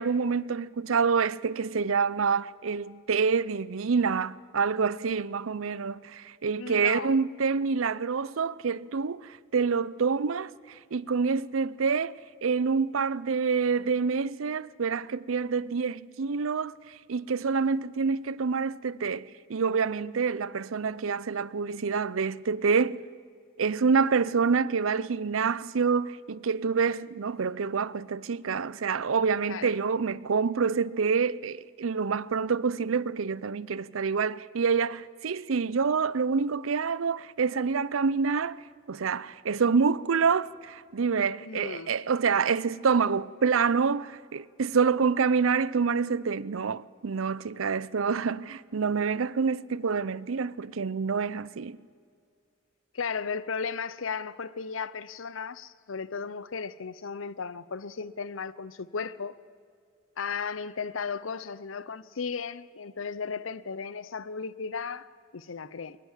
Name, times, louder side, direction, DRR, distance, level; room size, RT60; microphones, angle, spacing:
voice 1, 0.0-23.0 23.6-38.6 38.9-51.8, right 5 dB, 90° right, 0.6 m, -27 dB
voice 2, 6.6-7.2 29.5-29.7 41.4-41.9 52.9-59.4 60.2-66.0, left 5 dB, 80° left, 0.7 m, -35 dB
23.0 x 20.0 x 7.4 m
head